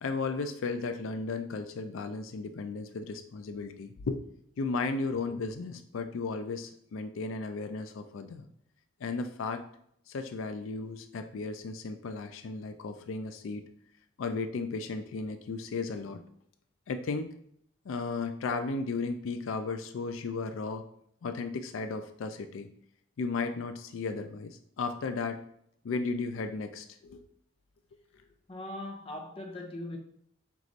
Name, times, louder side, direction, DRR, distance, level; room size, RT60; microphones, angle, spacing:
voice 1, 0.0-4.2 4.6-8.5 9.0-9.6 10.1-13.7 14.2-16.2 16.9-17.3 17.9-20.8 21.2-22.7 23.2-25.4 25.8-27.2, left 4 dB, 85° left, 0.4 m, -35 dB
voice 2, 28.5-30.0, left 1 dB, 30° left, 0.6 m, -40 dB
4.7 x 2.5 x 3.9 m
head